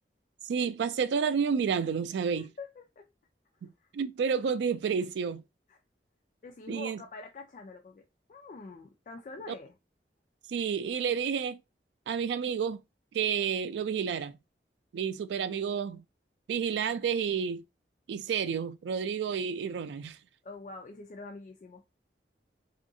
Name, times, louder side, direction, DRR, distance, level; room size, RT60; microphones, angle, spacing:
voice 1, 0.5-2.5 3.9-5.4 6.7-7.0 9.5-9.6 10.5-11.6 12.1-12.8 13.1-14.3 14.9-16.0 16.5-17.6 18.1-20.2, right 6 dB, 85° right, 0.3 m, -30 dB
voice 2, 2.2-3.1 3.6-3.9 5.7-5.8 6.4-9.8 20.4-21.8, left 3 dB, 45° left, 0.3 m, -46 dB
2.7 x 2.4 x 2.6 m
head